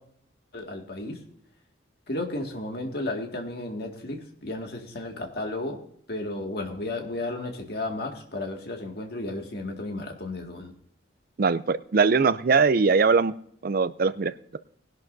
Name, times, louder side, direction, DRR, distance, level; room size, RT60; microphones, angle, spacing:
voice 1, 0.5-1.2 2.1-5.8 6.1-10.7, left 2 dB, 55° left, 2 dB, 2.0 m, -33 dB
voice 2, 11.4-13.3 13.6-14.6, right 4 dB, 50° right, 15 dB, 0.4 m, -21 dB
19.5 x 11.5 x 2.6 m, 0.65 s
head